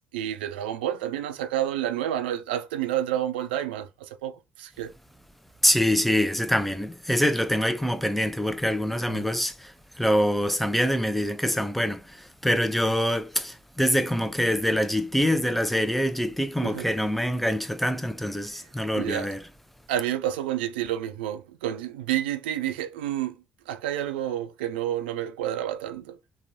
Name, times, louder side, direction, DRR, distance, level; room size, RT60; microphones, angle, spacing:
voice 1, 0.1-4.9 9.1-9.3 16.6-16.9 18.5-18.6 19.0-19.3 19.9-23.4 23.7-26.2, right 11 dB, 80° right, 0.3 m, -29 dB
voice 2, 5.6-19.4, equal, ahead, 0.5 m, -25 dB
2.9 x 2.2 x 2.6 m
hypercardioid pair, 50°, 5 cm